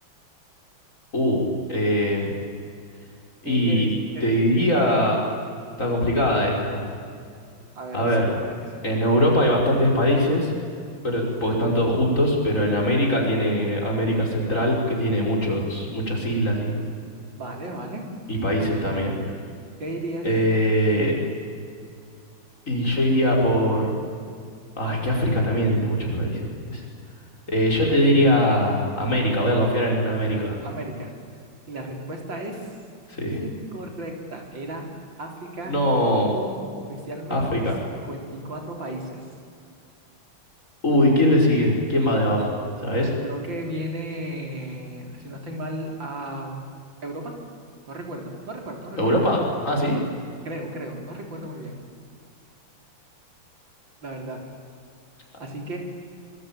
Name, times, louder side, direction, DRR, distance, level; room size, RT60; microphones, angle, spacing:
voice 1, 1.1-1.4 1.7-2.3 3.4-3.9 4.2-5.2 5.8-6.8 7.9-8.3 8.8-10.5 11.0-16.8 18.3-19.2 20.2-21.1 22.7-24.0 24.8-26.4 26.7-26.8 27.5-30.6 33.1-33.4 35.7-36.3 37.3-37.7 40.8-43.1 49.0-50.0, equal, 40° left, -1 dB, 5.9 m, -21 dB
voice 2, 3.4-3.9 4.1-4.3 7.8-8.8 11.2-11.5 17.3-18.1 18.6-18.8 19.8-20.3 24.8-25.3 27.8-28.2 30.6-31.1 31.7-32.7 33.3-34.9 35.2-35.8 36.3-39.2 43.2-46.6 47.0-47.3 47.9-49.1 50.4-51.7 54.0-54.4 55.4-55.8, right 1 dB, 65° right, 1 dB, 4.8 m, -35 dB
25.5 x 23.5 x 9.2 m, 2.3 s
omnidirectional pair, 2.2 m